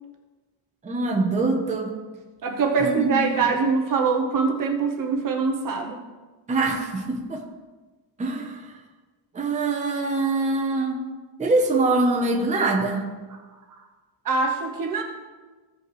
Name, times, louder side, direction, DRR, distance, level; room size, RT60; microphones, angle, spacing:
voice 1, 0.8-1.9 2.8-3.4 6.5-7.4 8.2-8.7 9.3-11.0 11.4-13.0, right 2 dB, 15° right, 0 dB, 0.9 m, -24 dB
voice 2, 2.4-6.0 14.2-15.0, right 5 dB, 40° right, 2 dB, 0.9 m, -23 dB
16.0 x 5.4 x 3.2 m, 1.3 s
cardioid pair, 170°, 49 cm